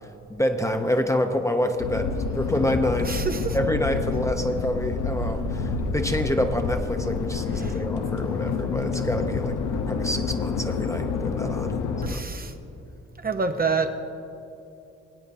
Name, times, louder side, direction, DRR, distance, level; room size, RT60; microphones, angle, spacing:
voice 1, 0.0-3.2 3.5-9.5 9.9-11.7 12.1-12.2, equal, 10° left, 5 dB, 0.7 m, -27 dB
sound 1, 1.8-12.1, left 5 dB, 80° left, 0.7 m, -28 dB
voice 2, 3.0-3.6 7.6-7.8 12.0-12.5 13.2-14.0, right 4 dB, 30° right, 7 dB, 0.8 m, -27 dB
20.5 x 8.5 x 2.7 m, 2.8 s
supercardioid pair, 50°, 31 cm